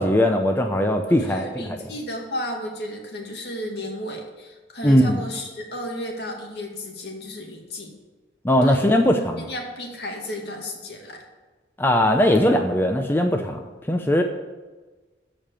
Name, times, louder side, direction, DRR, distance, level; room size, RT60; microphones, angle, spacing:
voice 1, 0.0-1.5 4.8-5.2 8.4-9.5 11.8-13.6 13.9-14.2, left 1 dB, 10° left, 4 dB, 0.6 m, -19 dB
voice 2, 1.0-7.9 8.6-8.8 9.4-11.2, left 1 dB, 70° left, 1 dB, 2.3 m, -33 dB
14.0 x 5.2 x 7.3 m, 1.3 s
head